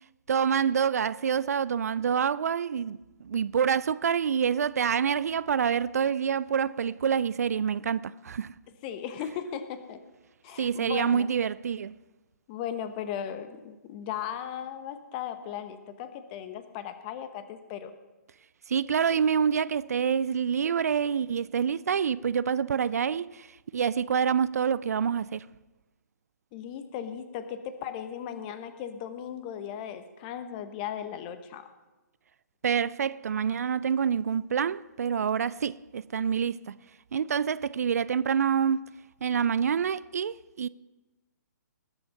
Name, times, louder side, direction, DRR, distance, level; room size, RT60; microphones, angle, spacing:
voice 1, 0.3-8.5 10.6-11.9 18.7-23.5 23.7-25.4 32.6-36.8 37.1-38.8 39.2-40.7, right 7 dB, 60° right, 0.4 m, -27 dB
voice 2, 8.8-10.0 10.4-11.3 12.5-17.9 26.5-31.7, left 9 dB, 30° left, 1.1 m, -37 dB
20.0 x 7.9 x 5.5 m
figure-of-eight pair, 130°, 10 cm